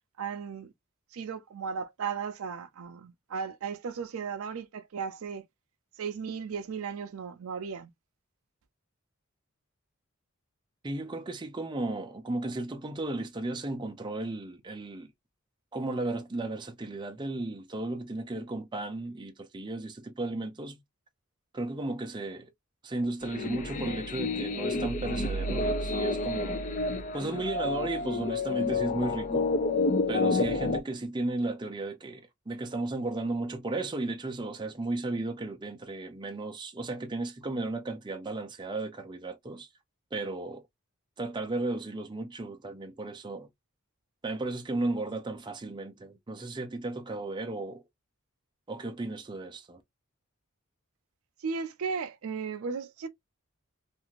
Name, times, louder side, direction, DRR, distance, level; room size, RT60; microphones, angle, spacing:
voice 1, 0.2-0.7 1.1-5.5 6.0-7.9 51.4-53.1, right 6 dB, 75° right, 0.4 m, -35 dB
voice 2, 10.8-15.1 15.7-20.8 21.5-22.5 22.8-26.6 27.1-29.5 30.1-39.7 40.1-40.6 41.2-43.5 44.2-47.8 48.7-49.8, right 2 dB, 20° right, 0.5 m, -34 dB
sound 1, 23.2-30.8, left 3 dB, 35° left, 0.4 m, -29 dB
2.6 x 2.4 x 2.9 m
head